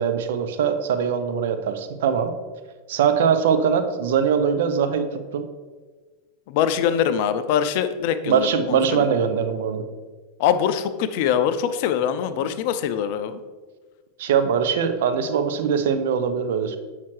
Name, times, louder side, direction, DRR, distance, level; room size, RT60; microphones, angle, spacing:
voice 1, 0.0-2.3 2.9-5.1 5.3-5.5 8.2-9.8 14.2-16.8, right 7 dB, 65° right, 8 dB, 0.6 m, -22 dB
voice 2, 6.5-8.8 10.4-13.4, left 9 dB, 55° left, 11 dB, 0.4 m, -23 dB
7.4 x 5.7 x 3.1 m, 1.4 s
hypercardioid pair, 90°, 0 cm